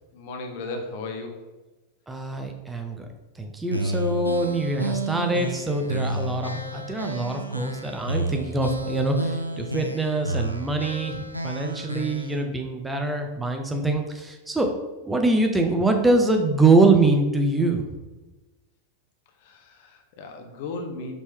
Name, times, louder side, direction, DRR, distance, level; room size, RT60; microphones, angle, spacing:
voice 1, 0.1-1.4 3.7-4.0 19.4-21.1, left 3 dB, 50° left, 4 dB, 0.6 m, -36 dB
voice 2, 2.1-3.1 3.4-14.7 15.0-17.9, right 2 dB, 10° right, 4 dB, 0.5 m, -24 dB
sound 1, 3.7-12.4, right 1 dB, 85° right, 0.3 m, -31 dB
5.1 x 3.1 x 3.3 m, 1.1 s
figure-of-eight pair, 90°, 0 cm